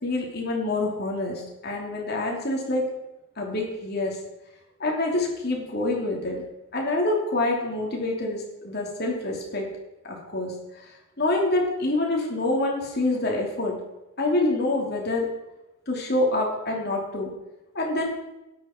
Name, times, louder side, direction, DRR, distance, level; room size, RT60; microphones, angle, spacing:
voice 1, 0.0-2.8 3.4-4.2 4.8-6.4 6.7-9.7 10.0-10.5 11.2-13.8 14.2-15.3 15.9-17.3 17.7-18.0, left 2 dB, 50° left, -1 dB, 3.0 m, -26 dB
13.0 x 10.0 x 4.5 m, 0.97 s
head